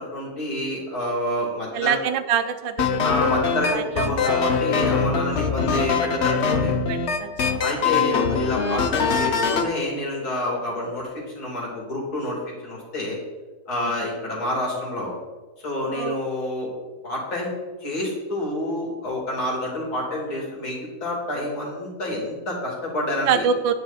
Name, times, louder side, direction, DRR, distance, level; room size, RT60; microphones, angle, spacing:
voice 1, 0.0-2.0 3.0-6.7 7.6-11.1 11.3-12.4 12.6-13.2 13.7-15.1 15.6-16.7 17.0-17.5 17.8-23.5, left 1 dB, 50° left, -2 dB, 3.3 m, -28 dB
voice 2, 1.7-3.1 3.7-4.4 6.9-7.3 13.8-13.9 15.9-16.2 23.3-23.7, right 7 dB, 75° right, 8 dB, 1.2 m, -25 dB
sound 1, 2.8-9.7, left 5 dB, 75° left, 0.6 m, -23 dB
9.7 x 9.6 x 4.1 m, 1.2 s
omnidirectional pair, 2.2 m